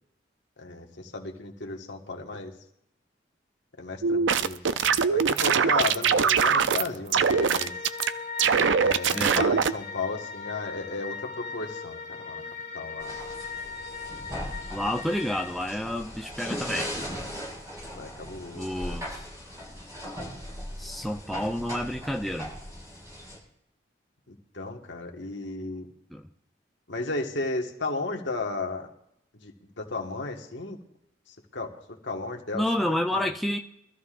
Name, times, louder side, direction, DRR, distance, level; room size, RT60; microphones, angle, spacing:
voice 1, 0.6-2.5 3.8-7.7 8.7-12.4 12.7-13.1 17.9-19.0 24.3-25.9 26.9-28.9 29.4-30.8 31.5-31.7 32.0-33.3, left 3 dB, 75° left, 1.6 m, -34 dB
sound 1, 4.0-6.9 7.1-8.1 8.4-9.7, right 6 dB, 80° right, 0.5 m, -22 dB
sound 2, 7.3-15.6, left 5 dB, 40° left, 1.8 m, -39 dB
voice 2, 9.1-9.5 14.7-16.9 18.5-19.2 20.8-22.5 26.1-26.2 32.5-33.6, left 1 dB, ahead, 0.5 m, -29 dB
sound 3, 13.0-23.4, equal, 20° right, 6.8 m, -38 dB
23.0 x 13.5 x 2.5 m
head